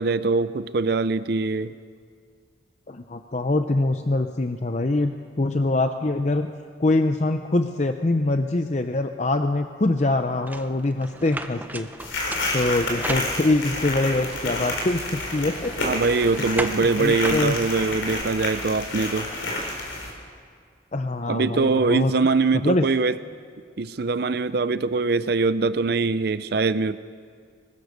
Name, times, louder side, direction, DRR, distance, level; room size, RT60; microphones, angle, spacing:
voice 1, 0.0-1.7 15.8-19.3 21.3-23.2 23.8-27.0, right 4 dB, 55° right, 14 dB, 0.5 m, -23 dB
voice 2, 2.9-5.1 5.4-6.5 6.8-11.9 12.5-15.7 17.0-17.5 20.9-22.1 22.6-22.8, left 2 dB, 35° left, 7 dB, 0.6 m, -24 dB
sound 1, 10.5-13.8 14.3-18.2, right 1 dB, 10° right, 0.6 m, -36 dB
sound 2, 12.0-20.1, left 2 dB, 90° left, 4.7 m, -29 dB
23.0 x 19.5 x 6.7 m, 2.1 s
head